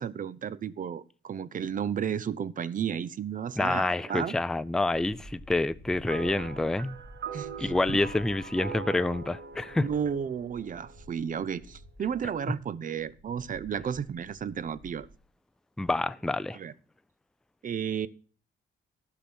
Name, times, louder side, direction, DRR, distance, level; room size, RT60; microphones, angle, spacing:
voice 1, 0.0-4.3 7.3-7.8 9.8-15.1 16.5-16.7 17.6-18.1, right 8 dB, 40° right, 0.6 m, -33 dB
voice 2, 3.6-7.0 7.6-9.9 15.8-16.6, left 2 dB, 5° left, 0.4 m, -28 dB
sound 1, 4.9-15.1, equal, 20° right, 3.8 m, -51 dB
sound 2, 6.1-11.6, right 6 dB, 60° right, 1.0 m, -42 dB
12.0 x 5.9 x 6.0 m
cardioid pair, 90°, 20 cm